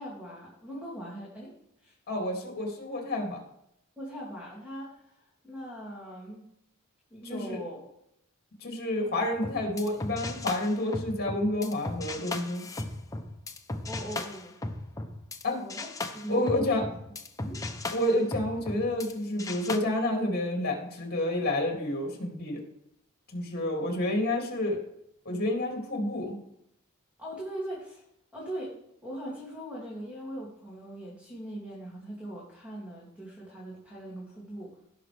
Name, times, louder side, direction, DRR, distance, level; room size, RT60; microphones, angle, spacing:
voice 1, 0.0-2.0 4.0-6.5 7.1-7.9 13.8-14.5 15.6-15.9 16.1-16.8 17.4-17.6 27.2-28.0 28.3-34.8, equal, 5° right, -6 dB, 2.4 m, -40 dB
voice 2, 2.1-3.4 7.3-7.5 8.6-12.6 15.4-15.6 16.3-16.8 17.9-22.6 23.3-24.8 25.2-26.3, left 1 dB, 45° left, 1 dB, 2.5 m, -29 dB
sound 1, 9.4-15.4 15.7-19.1 19.4-19.8, left 2 dB, 15° left, 0.7 m, -37 dB
17.0 x 5.9 x 3.4 m, 0.77 s
head